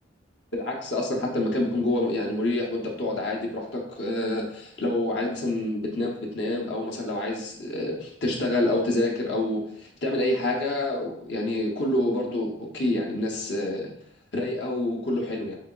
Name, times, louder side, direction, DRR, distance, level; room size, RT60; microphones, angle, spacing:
voice 1, 0.5-13.9 14.3-15.6, left 1 dB, 70° left, -1 dB, 0.8 m, -27 dB
4.7 x 3.7 x 2.3 m, 0.70 s
head